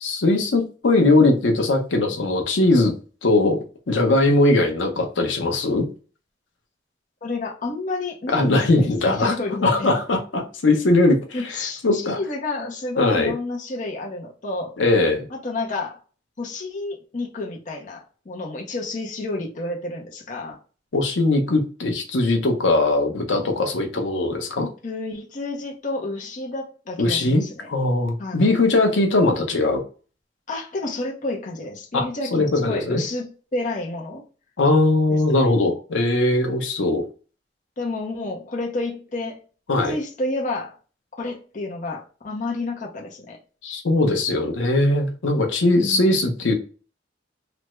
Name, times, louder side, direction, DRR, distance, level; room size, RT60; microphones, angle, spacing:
voice 1, 0.0-2.9 3.2-3.6 3.9-5.9 8.3-9.3 9.6-11.4 11.8-12.2 13.0-13.3 14.8-15.3 20.9-24.7 27.0-29.8 31.9-33.0 34.6-37.0 39.7-40.0 43.6-46.5, left 2 dB, 85° left, 0.7 m, -20 dB
voice 2, 7.2-9.9 11.3-14.8 15.3-16.0 16.4-20.6 24.8-27.7 28.2-28.5 30.5-34.3 35.1-35.5 37.8-39.4 39.8-40.8 41.2-43.4 45.7-46.2, left 2 dB, 45° left, 0.6 m, -30 dB
3.3 x 2.0 x 3.0 m
head